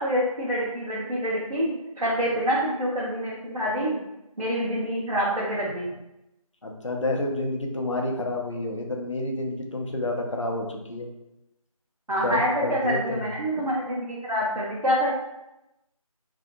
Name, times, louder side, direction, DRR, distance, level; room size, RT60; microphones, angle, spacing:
voice 1, 0.0-1.7 2.0-4.0 4.4-5.9 12.1-15.1, equal, 90° right, -7 dB, 0.9 m, -26 dB
voice 2, 6.6-11.1 12.2-13.3, left 1 dB, 55° left, 1 dB, 0.5 m, -29 dB
2.7 x 2.2 x 2.5 m, 0.91 s
figure-of-eight pair, 180°, 19 cm